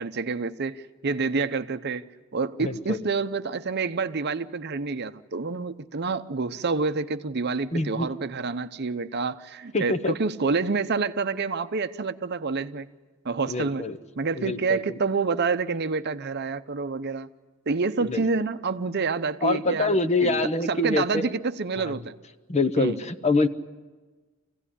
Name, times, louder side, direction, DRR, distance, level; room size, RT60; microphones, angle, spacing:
voice 1, 0.0-2.0 2.3-12.9 13.2-13.8 14.2-17.3 17.7-20.4 20.7-22.1 22.8-23.0, right 4 dB, 50° right, 0.7 m, -28 dB
voice 2, 2.6-3.0 7.7-8.1 9.7-10.2 13.5-14.0 14.3-15.0 18.0-18.2 19.4-21.3 21.8-22.0 22.5-23.5, left 2 dB, 30° left, 0.9 m, -25 dB
26.0 x 16.5 x 9.9 m
head